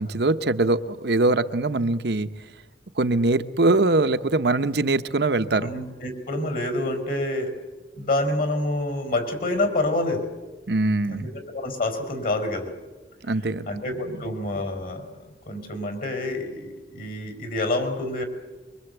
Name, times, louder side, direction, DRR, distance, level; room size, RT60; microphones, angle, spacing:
voice 1, 0.0-2.3 2.9-5.7 10.7-11.3 13.2-13.7 14.0-14.2, right 2 dB, 65° right, 11 dB, 0.9 m, -22 dB
voice 2, 5.5-7.6 8.0-10.3 11.1-12.7 13.7-18.2, left 2 dB, 55° left, 7 dB, 4.7 m, -27 dB
24.5 x 23.5 x 8.1 m, 1.3 s
head